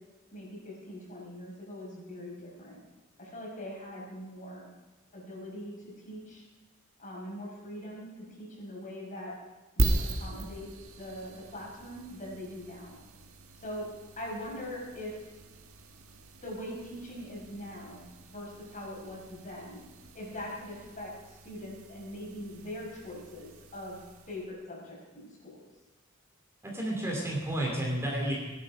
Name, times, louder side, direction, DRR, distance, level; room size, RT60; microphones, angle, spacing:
voice 1, 0.3-2.8 3.2-4.7 5.1-5.7 6.0-6.4 7.0-8.1 8.4-9.3 9.8-10.7 11.0-13.0 13.6-13.9 14.2-15.1 16.4-19.8 20.1-24.0 24.3-25.6, left 1 dB, 40° left, -3 dB, 5.8 m, -42 dB
sound 1, 9.8-24.5, right 1 dB, 85° right, 1.6 m, -39 dB
voice 2, 26.6-28.3, right 1 dB, 15° right, -2 dB, 3.1 m, -31 dB
19.0 x 12.0 x 5.1 m, 1.2 s
head